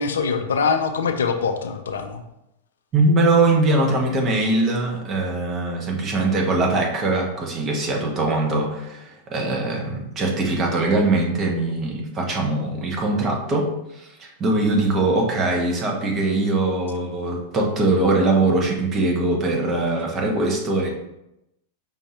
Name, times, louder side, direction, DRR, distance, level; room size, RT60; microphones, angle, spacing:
voice 1, 0.0-2.2, left 5 dB, 65° left, 7 dB, 0.4 m, -23 dB
voice 2, 2.9-20.9, right 2 dB, 25° right, 0 dB, 0.9 m, -22 dB
5.2 x 2.7 x 3.1 m, 0.86 s
figure-of-eight pair, 90°, 0 cm